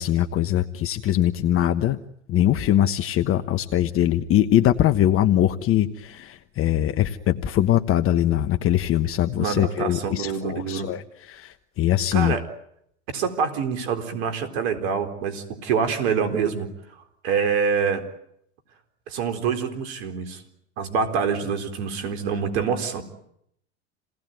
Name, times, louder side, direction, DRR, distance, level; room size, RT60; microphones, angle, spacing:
voice 1, 0.0-2.0 2.3-12.4, left 12 dB, 40° left, 8 dB, 1.2 m, -22 dB
voice 2, 9.4-10.9 12.1-12.4 13.1-16.7 17.2-18.1 19.1-20.4 20.8-23.0, right 6 dB, 70° right, 7 dB, 4.1 m, -26 dB
28.5 x 19.0 x 9.4 m, 0.73 s
hypercardioid pair, 95°, 34 cm